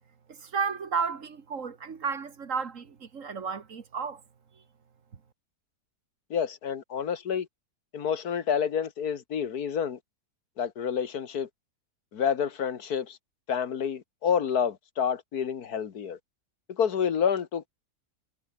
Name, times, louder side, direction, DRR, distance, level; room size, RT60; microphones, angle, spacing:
voice 1, 0.3-4.2, right 5 dB, 50° right, 1.8 m, -33 dB
voice 2, 6.3-7.5 7.9-10.0 10.6-11.5 12.1-13.2 13.5-16.2 16.8-17.7, left 7 dB, 70° left, 1.8 m, -28 dB
omnidirectional pair, 1.7 m